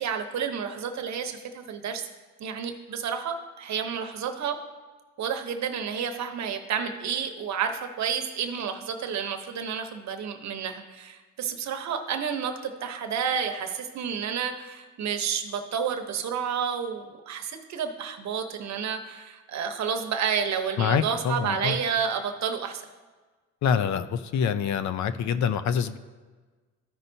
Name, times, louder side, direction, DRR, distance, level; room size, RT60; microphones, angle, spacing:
voice 1, 0.0-2.1 2.4-4.6 5.2-22.8, right 7 dB, 65° right, 6 dB, 0.9 m, -30 dB
voice 2, 20.8-21.8 23.6-26.0, left 7 dB, 70° left, 12 dB, 0.6 m, -26 dB
13.5 x 5.5 x 2.7 m, 1.4 s
cardioid pair, 90°, 30 cm